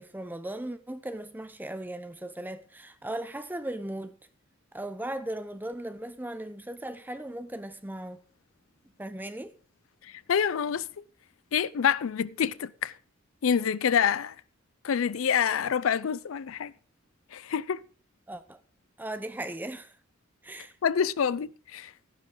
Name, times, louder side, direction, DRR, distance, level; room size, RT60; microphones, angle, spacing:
voice 1, 0.0-4.2 4.7-8.2 9.0-9.5 18.3-18.6 19.0-19.9 20.4-20.7, right 1 dB, 10° right, 0.7 m, -37 dB
voice 2, 10.3-10.8 11.5-12.9 13.4-14.3 14.8-16.7 17.3-17.8 20.8-21.9, left 7 dB, 75° left, 0.4 m, -26 dB
12.0 x 11.5 x 3.8 m
head